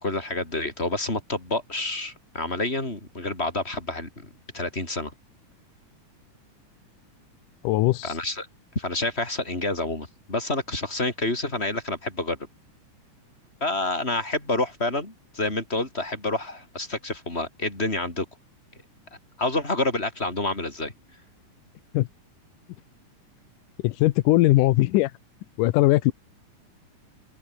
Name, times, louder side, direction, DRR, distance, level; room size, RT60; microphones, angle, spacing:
voice 1, 0.0-4.1 4.5-5.1 8.0-8.5 8.8-12.4 13.6-18.3 19.4-20.9, left 2 dB, 20° left, 5.5 m, -28 dB
voice 2, 7.6-8.1 21.9-22.1 23.8-25.1 25.6-26.1, left 17 dB, 85° left, 2.3 m, -20 dB
open air
omnidirectional pair, 3.7 m